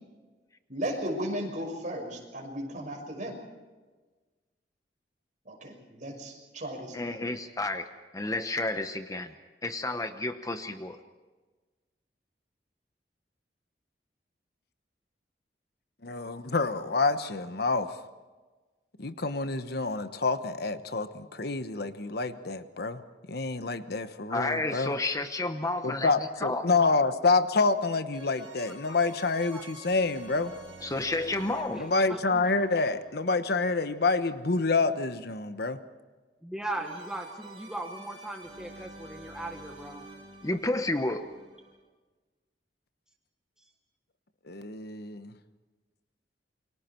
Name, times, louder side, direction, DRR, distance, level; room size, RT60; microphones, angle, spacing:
voice 1, 0.7-3.4 5.4-7.3, equal, 45° right, 2 dB, 6.0 m, -35 dB
voice 2, 6.9-9.3 9.6-11.0 24.3-26.6 30.8-31.8 40.4-41.2, left 2 dB, 20° left, 8 dB, 0.9 m, -31 dB
voice 3, 16.0-18.0 19.0-23.0 23.3-24.9 25.8-30.5 31.8-35.8 44.5-45.4, left 3 dB, 65° left, 10 dB, 1.1 m, -28 dB
sound 1, 28.1-34.1 36.7-41.8, right 2 dB, 30° right, 8.0 m, -49 dB
voice 4, 31.7-32.5 36.4-40.1, right 1 dB, 5° right, 2 dB, 1.5 m, -38 dB
29.0 x 23.5 x 4.6 m, 1.3 s
head